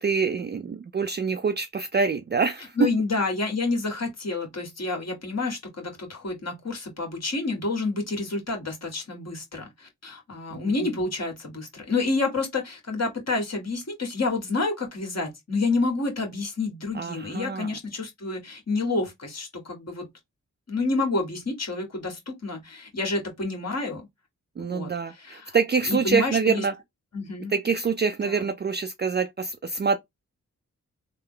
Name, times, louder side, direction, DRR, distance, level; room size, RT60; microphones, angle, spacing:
voice 1, 0.0-2.7 10.5-10.7 16.9-17.7 24.6-26.7 27.5-30.0, right 5 dB, 35° right, 0.4 m, -26 dB
voice 2, 2.8-20.1 20.7-24.1 24.6-25.6 25.9-26.6 27.1-27.5 28.2-28.5, left 3 dB, 50° left, 1.7 m, -29 dB
3.3 x 2.0 x 3.7 m
cardioid pair, 55°, 33 cm